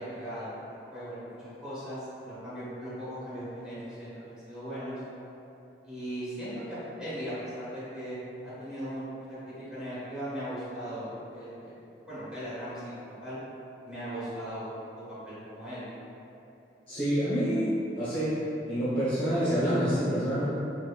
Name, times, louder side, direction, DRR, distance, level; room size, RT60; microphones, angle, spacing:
voice 1, 0.0-5.0 5.8-8.1 8.4-9.0 9.3-11.8 12.1-13.4 13.8-15.9, equal, 5° right, -13 dB, 1.2 m, -38 dB
voice 2, 16.9-20.4, equal, 30° left, -12 dB, 0.8 m, -27 dB
3.9 x 3.0 x 2.2 m, 2.8 s
head